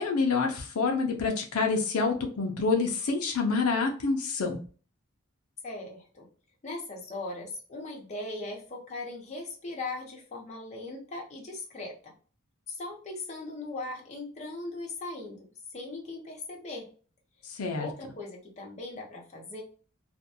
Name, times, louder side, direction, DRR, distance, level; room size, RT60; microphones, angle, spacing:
voice 1, 0.0-4.6 17.4-17.9, left 4 dB, 85° left, 3 dB, 0.5 m, -27 dB
voice 2, 5.6-6.2 6.6-12.1 12.7-15.5 15.7-16.9 17.7-19.6, left 2 dB, 35° left, -1 dB, 0.8 m, -39 dB
2.5 x 2.2 x 2.6 m, 0.39 s
head